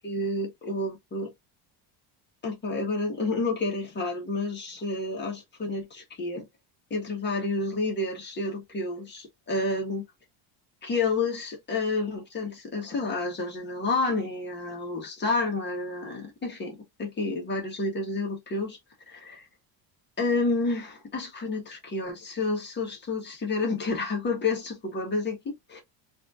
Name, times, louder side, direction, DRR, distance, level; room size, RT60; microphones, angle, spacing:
voice 1, 0.0-1.3 2.4-6.4 6.9-10.0 10.8-18.8 19.1-19.4 20.2-25.8, left 3 dB, 20° left, 1.4 m, -30 dB
4.2 x 2.7 x 2.4 m
cardioid pair, 150°, 50 cm